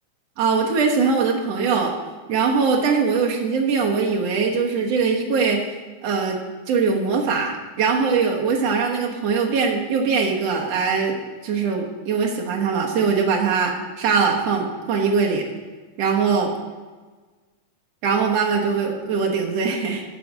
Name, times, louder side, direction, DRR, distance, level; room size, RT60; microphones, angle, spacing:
voice 1, 0.4-1.9 2.3-5.6 6.0-6.4 6.7-11.2 11.4-15.5 16.0-16.5 18.0-20.0, right 5 dB, 65° right, 0 dB, 2.3 m, -21 dB
9.3 x 7.3 x 6.3 m, 1.3 s
omnidirectional pair, 3.3 m